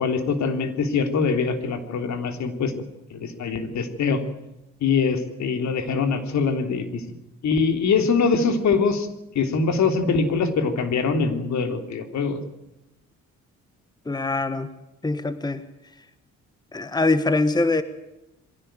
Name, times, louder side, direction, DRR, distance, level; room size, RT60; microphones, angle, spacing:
voice 1, 0.0-2.7 3.1-4.2 4.8-7.0 7.4-9.1 9.3-12.4, left 5 dB, 65° left, 7 dB, 3.4 m, -23 dB
voice 2, 14.0-14.7 15.0-15.6 16.7-17.8, left 2 dB, 15° left, 12 dB, 1.4 m, -23 dB
23.0 x 16.5 x 9.1 m, 0.93 s
cardioid pair, 90°, 30 cm